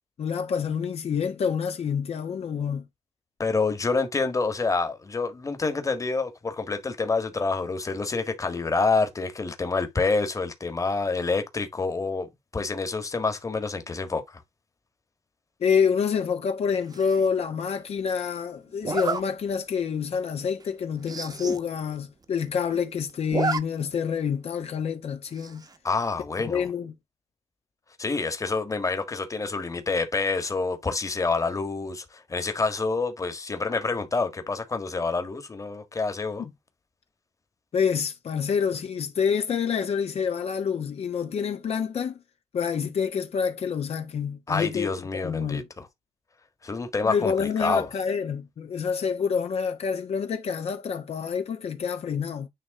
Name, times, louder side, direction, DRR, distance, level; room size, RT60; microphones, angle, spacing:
voice 1, 0.2-2.8 15.6-25.6 26.4-26.9 36.4-36.5 37.7-42.2 42.5-45.7 47.0-52.5, left 6 dB, 65° left, 1.2 m, -27 dB
voice 2, 3.4-14.4 25.8-26.7 28.0-36.4 44.5-45.9 46.6-47.9, left 4 dB, 30° left, 1.6 m, -27 dB
Zipper (clothing), 16.9-17.3 18.8-19.2 19.8-20.0 20.3-20.4 20.6-20.7 21.0-21.6 22.0-22.1 22.2-22.8 23.1-23.6 23.9-24.0 25.4-25.8, right 4 dB, 35° right, 1.1 m, -30 dB
9.5 x 3.2 x 3.6 m
cardioid pair, 95°, 11 cm